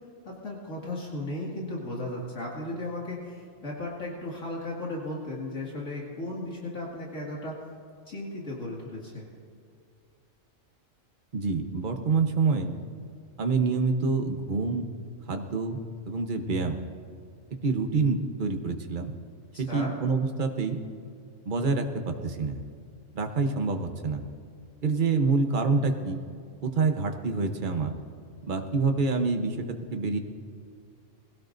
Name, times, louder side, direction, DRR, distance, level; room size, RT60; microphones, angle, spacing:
voice 1, 0.2-7.6 8.1-9.2 19.5-19.9, left 1 dB, 75° left, -4 dB, 2.6 m, -35 dB
voice 2, 11.3-12.7 13.4-14.8 15.3-15.8 16.0-16.8 17.6-19.1 19.6-20.8 21.4-22.6 23.1-24.2 24.8-26.2 26.6-27.9 28.4-30.2, right 4 dB, 40° right, 5 dB, 1.1 m, -27 dB
21.5 x 16.5 x 2.6 m, 2.3 s
omnidirectional pair, 1.4 m